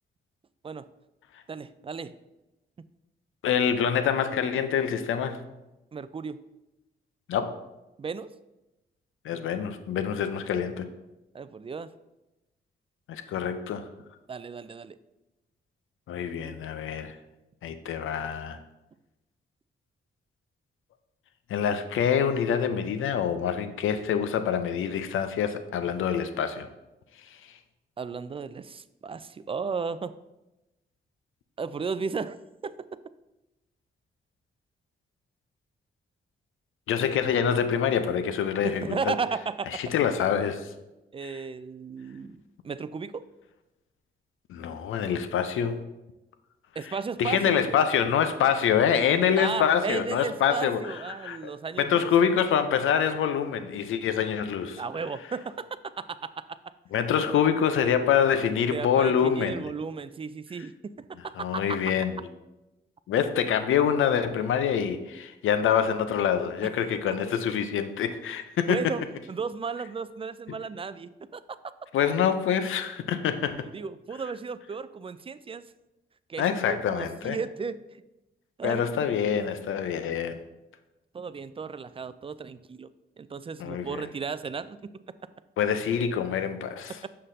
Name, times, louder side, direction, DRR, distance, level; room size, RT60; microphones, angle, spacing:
voice 1, 1.5-2.1 5.9-6.4 8.0-8.3 11.3-11.9 14.3-15.0 28.0-30.1 31.6-32.4 32.6-32.8 38.6-39.8 41.1-43.2 46.8-47.6 49.4-52.1 54.8-56.6 58.7-61.4 68.7-69.0 69.3-71.4 73.7-75.6 76.3-77.8 78.6-79.0 81.1-82.9 83.2-84.9 87.0-87.1, right 5 dB, 25° right, 15 dB, 0.3 m, -34 dB
voice 2, 3.4-5.5 7.3-7.5 9.2-10.9 13.1-13.9 16.1-17.2 17.6-18.6 21.5-26.7 27.5-27.6 36.9-39.1 39.7-40.7 41.2-41.4 44.5-45.8 46.8-46.9 47.2-51.5 51.8-54.8 56.9-59.7 61.4-62.2 63.1-68.9 70.5-70.6 71.9-73.6 76.4-77.4 78.6-80.4 83.6-84.1 85.6-87.0, left 8 dB, 75° left, 10 dB, 0.5 m, -26 dB
6.5 x 5.6 x 2.6 m, 0.98 s
supercardioid pair, 40°, 21 cm